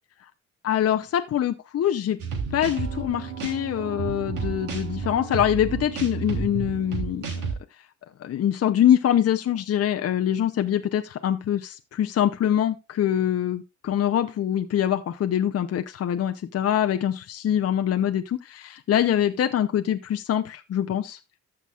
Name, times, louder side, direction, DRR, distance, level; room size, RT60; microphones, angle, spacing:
voice 1, 0.6-2.2 2.5-7.5 8.2-21.2, left 10 dB, 55° left, 0.7 m, -24 dB
sound 1, 2.2-7.5, right 5 dB, 85° right, 3.3 m, -31 dB
14.0 x 5.9 x 2.4 m
cardioid pair, 90°, 30 cm